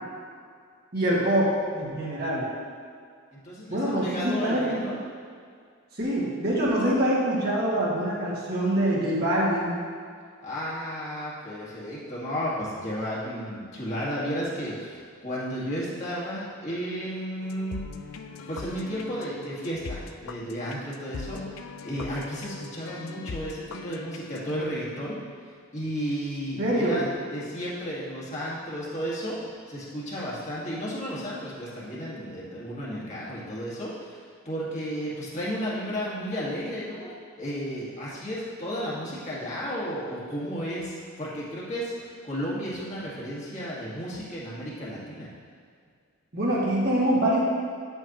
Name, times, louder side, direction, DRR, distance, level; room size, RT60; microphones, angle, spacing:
voice 1, 0.9-2.5 3.7-4.8 5.9-9.8 26.6-27.0 46.3-47.4, right 1 dB, 50° right, -6 dB, 1.9 m, -25 dB
voice 2, 3.3-5.0 10.4-17.8 18.5-25.2 25.7-29.4 29.7-37.1 37.4-45.3, equal, 35° left, -7 dB, 1.8 m, -33 dB
sound 1, 17.4-24.7, left 4 dB, 85° left, 0.5 m, -41 dB
9.5 x 8.0 x 3.0 m, 2.2 s
head